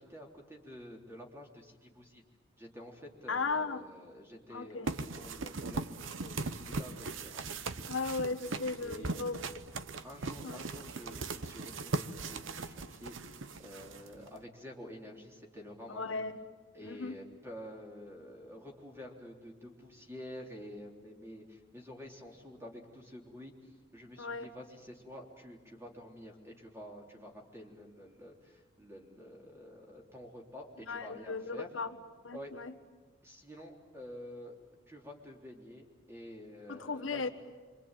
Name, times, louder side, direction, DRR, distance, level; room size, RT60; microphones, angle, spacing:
voice 1, 0.0-2.2 2.6-7.8 8.8-9.2 10.0-13.1 13.6-16.2 16.7-31.7 32.3-32.5 33.2-34.5 34.9-37.3, left 1 dB, 15° right, 0 dB, 3.5 m, -49 dB
voice 2, 3.3-3.8 4.5-4.9 7.9-9.4 10.4-10.6 15.9-16.4 16.8-17.2 24.2-24.5 30.8-31.9 32.2-32.7 36.7-37.3, left 4 dB, 85° left, 6 dB, 1.5 m, -36 dB
sound 1, 4.9-14.4, right 3 dB, 80° right, 1.0 m, -39 dB
26.5 x 24.5 x 9.1 m, 1.5 s
head